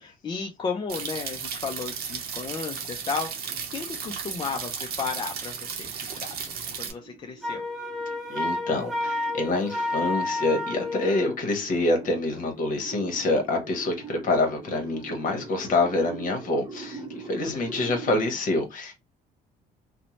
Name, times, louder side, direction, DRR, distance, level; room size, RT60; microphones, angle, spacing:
voice 1, 0.0-7.6 17.5-18.1, left 5 dB, 30° left, 0.4 m, -34 dB
sound 1, 0.9-6.9, right 6 dB, 65° right, 0.7 m, -35 dB
sound 2, 4.2-18.2, right 4 dB, 20° right, 0.6 m, -43 dB
Wind instrument woodwind instrument, 7.4-11.4, left 2 dB, ahead, 0.9 m, -30 dB
voice 2, 8.3-18.9, left 2 dB, 50° left, 1.0 m, -26 dB
2.6 x 2.1 x 2.9 m
cardioid pair, 110°, 17 cm